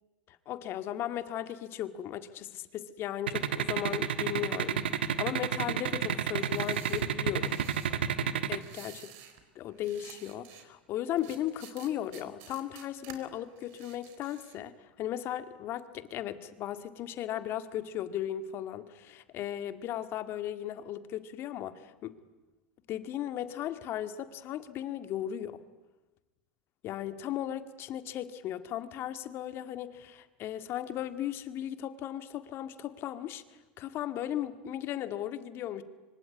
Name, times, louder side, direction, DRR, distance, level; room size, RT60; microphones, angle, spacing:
voice 1, 0.3-7.6 8.5-8.9 9.6-22.2 22.9-25.6 26.8-33.4 33.8-35.8, left 11 dB, 45° left, 10 dB, 1.9 m, -36 dB
sound 1, 3.3-8.6, right 9 dB, 80° right, 1.4 m, -29 dB
sound 2, 6.3-8.0 8.5-9.4 9.7-10.7 11.2-13.2 13.6-14.6, right 10 dB, 55° right, 4.0 m, -52 dB
25.0 x 24.5 x 9.6 m, 1.1 s
hypercardioid pair, 95°, 6 cm